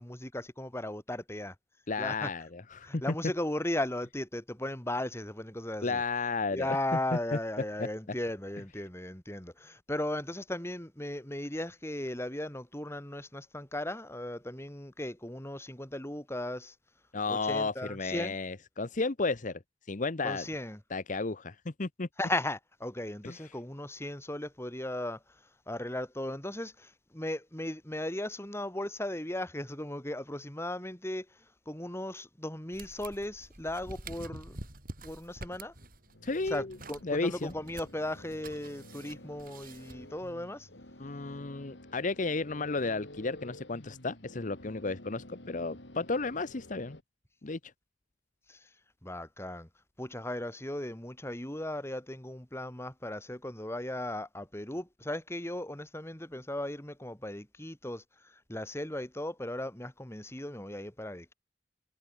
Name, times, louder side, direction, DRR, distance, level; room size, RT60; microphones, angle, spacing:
voice 1, 0.0-1.5 2.0-2.3 2.8-6.0 6.5-16.7 17.3-18.3 20.2-20.8 22.2-25.2 25.7-31.3 31.7-34.6 35.0-35.7 36.5-40.7 48.5-48.6 49.0-49.7 50.0-61.3, left 1 dB, 15° left, 3.4 m, -37 dB
voice 2, 1.9-3.1 5.8-6.8 7.3-7.4 7.8-7.9 17.1-19.6 19.9-20.4 20.9-22.1 23.2-23.4 36.2-36.8 37.0-37.5 41.0-47.0 47.4-47.7, left 3 dB, 45° left, 0.9 m, -33 dB
sound 1, 32.7-40.3, right 2 dB, 50° right, 6.0 m, -48 dB
sound 2, 36.1-47.0, left 1 dB, 75° left, 4.6 m, -51 dB
head